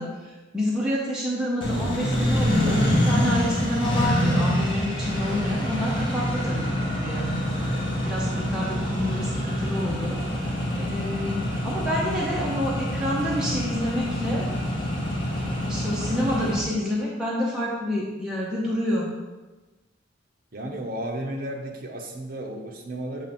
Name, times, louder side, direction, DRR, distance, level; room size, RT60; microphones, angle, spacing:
voice 1, 0.0-6.6 7.0-7.4 8.0-14.6 15.7-19.1, left 1 dB, 5° right, -6 dB, 0.7 m, -28 dB
Accelerating revving vroom, 1.6-16.6, equal, 25° left, 1.1 m, -26 dB
voice 2, 20.5-23.3, right 1 dB, 50° right, 2 dB, 0.8 m, -33 dB
7.4 x 3.2 x 4.3 m, 1.2 s
head